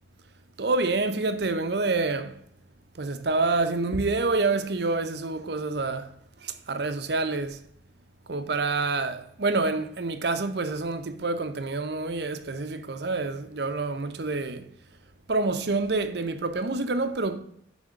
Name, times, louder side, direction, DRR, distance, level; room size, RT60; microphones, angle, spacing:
voice 1, 0.6-2.3 3.0-6.1 6.4-7.6 8.3-14.6 15.3-17.4, right 3 dB, 60° right, 0.7 m, -27 dB
7.7 x 3.5 x 6.4 m
head